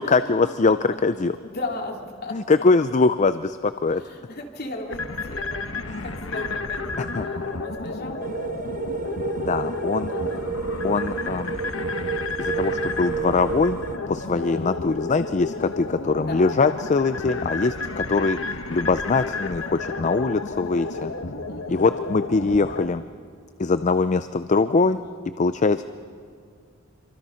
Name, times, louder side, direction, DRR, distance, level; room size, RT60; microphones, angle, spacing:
voice 1, 0.0-1.4 2.3-4.0 5.9-6.1 7.1-7.5 9.4-10.1 10.8-11.6 12.4-13.8 14.1-18.4 18.7-21.1 21.7-23.0 23.6-25.0 25.4-25.8, left 3 dB, 35° left, 12 dB, 0.5 m, -22 dB
voice 2, 1.4-2.5 3.9-5.7 6.0-7.1 7.6-8.2 10.1-10.5 14.2-14.5 15.3-15.5 16.2-16.5 21.5-21.8 24.8-25.2, left 2 dB, 50° left, 1 dB, 3.1 m, -36 dB
sound 1, 4.9-22.9, left 3 dB, 75° left, 1.3 m, -31 dB
sound 2, 8.2-14.0, right 5 dB, 45° right, 0.6 m, -30 dB
27.5 x 24.0 x 5.7 m, 2.1 s
head